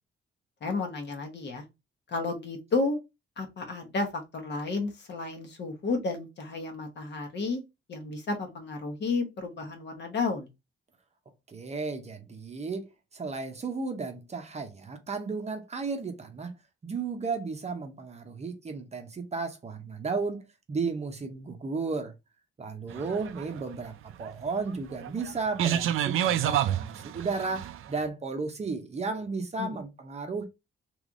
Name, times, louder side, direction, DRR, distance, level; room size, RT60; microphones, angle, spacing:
voice 1, 0.6-1.6 2.1-3.0 3.4-7.6 7.9-10.5 23.0-23.1 29.6-29.8, left 3 dB, 55° left, 1.0 m, -32 dB
voice 2, 11.5-12.9 13.1-16.5 16.8-22.1 22.6-23.9 24.2-30.5, right 4 dB, 30° right, 0.7 m, -34 dB
sound 1, 22.9-27.9, right 11 dB, 75° right, 0.4 m, -29 dB
3.3 x 3.1 x 2.4 m
cardioid pair, 130°, 21 cm